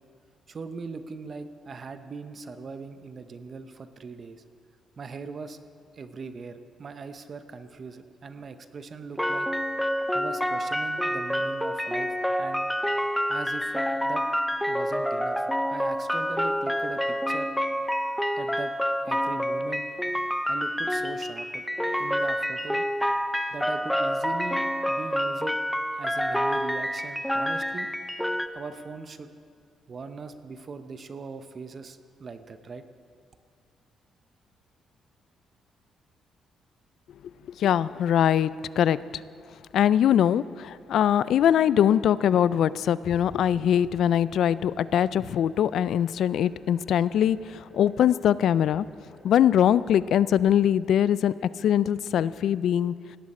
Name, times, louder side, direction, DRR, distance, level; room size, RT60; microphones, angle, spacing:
voice 1, 0.5-4.4 5.0-5.6 5.9-9.5 10.1-12.7 13.3-14.2 14.7-17.5 18.4-18.7 19.1-19.9 20.5-21.6 22.0-22.8 23.5-24.6 24.9-25.5 26.0-27.9 28.5-29.3 29.9-32.8, right 4 dB, 45° right, 10 dB, 0.8 m, -40 dB
sound 1, 9.2-28.5, equal, 5° left, 0.6 m, -28 dB
voice 2, 37.6-38.5 38.8-39.2 39.7-48.9 49.2-51.3 51.6-52.9, left 10 dB, 70° left, 18 dB, 0.3 m, -22 dB
sound 2, 43.0-50.4, left 2 dB, 45° left, 3.2 m, -51 dB
17.5 x 12.5 x 4.3 m, 2.2 s
cardioid pair, 90°, 0 cm